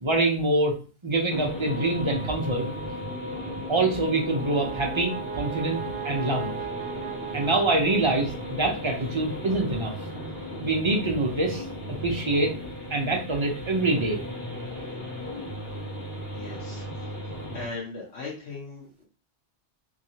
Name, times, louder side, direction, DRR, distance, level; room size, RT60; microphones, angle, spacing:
voice 1, 0.0-0.7 1.0-2.7 3.7-6.5 7.3-9.9 10.6-11.6 12.0-12.5 12.9-14.2, right 2 dB, 35° right, 0 dB, 0.6 m, -25 dB
sound 1, 1.3-17.6, equal, 65° left, 1.4 m, -36 dB
sound 2, 1.7-9.5, left 3 dB, 35° left, 0.3 m, -43 dB
Brass instrument, 4.0-8.5, right 12 dB, 65° right, 0.9 m, -37 dB
voice 2, 16.3-19.1, left 4 dB, 80° left, -5 dB, 1.1 m, -40 dB
2.9 x 2.7 x 2.7 m, 0.35 s
omnidirectional pair, 1.1 m